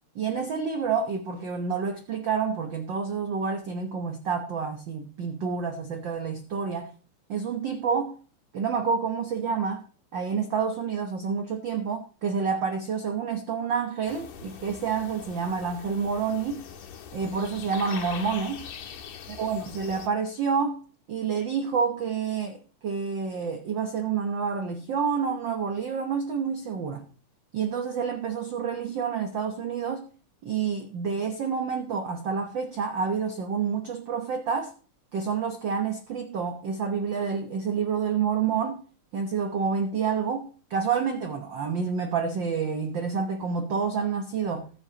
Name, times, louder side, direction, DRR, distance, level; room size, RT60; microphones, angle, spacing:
voice 1, 0.1-6.9 7.3-8.2 8.5-9.8 10.1-16.6 17.1-18.7 19.4-20.8 21.1-27.1 27.5-30.1 30.4-34.7 35.1-38.8 39.1-44.7, right 6 dB, 65° right, 1.1 m, -28 dB
sound 1, 14.1-20.1, left 7 dB, 80° left, 2.8 m, -42 dB
19.5 x 7.9 x 2.9 m
omnidirectional pair, 3.4 m